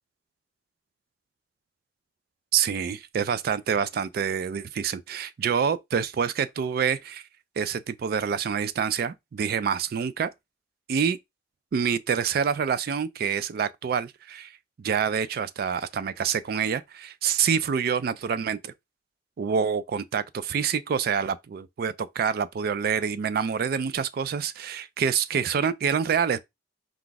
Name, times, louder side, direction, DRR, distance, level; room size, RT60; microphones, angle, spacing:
voice 1, 2.5-7.2 7.6-10.3 10.9-11.2 11.7-18.7 19.4-26.4, right 7 dB, 60° right, 0.3 m, -27 dB
4.6 x 2.4 x 3.9 m
head